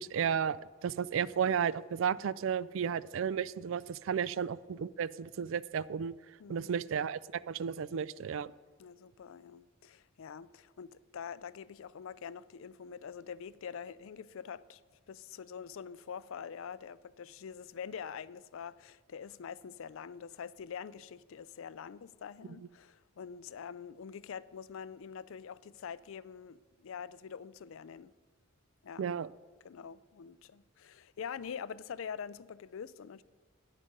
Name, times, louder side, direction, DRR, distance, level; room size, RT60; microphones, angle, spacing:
voice 1, 0.0-6.1 6.5-8.5 29.0-29.3, right 7 dB, 65° right, 0.3 m, -33 dB
voice 2, 6.4-6.8 8.8-14.8 15.1-28.1 28.8-29.0 29.6-33.2, left 7 dB, 65° left, 0.4 m, -45 dB
11.0 x 9.2 x 5.3 m
head